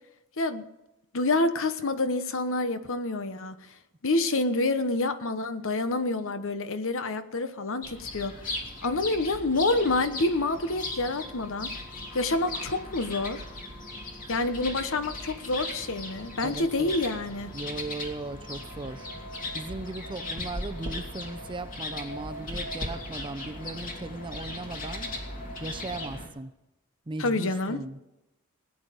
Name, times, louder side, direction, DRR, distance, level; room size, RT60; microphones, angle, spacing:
voice 1, 1.1-3.5 4.0-8.3 8.8-11.7 12.1-13.4 14.3-17.5 27.2-27.8, left 2 dB, 65° left, 10 dB, 1.1 m, -27 dB
sound 1, 7.8-26.3, left 2 dB, 40° left, 2.8 m, -38 dB
voice 2, 16.4-17.0 17.5-19.1 19.5-25.1 25.6-26.5 27.1-28.0, right 2 dB, 20° right, 9 dB, 0.7 m, -37 dB
17.5 x 9.7 x 5.2 m, 0.96 s
head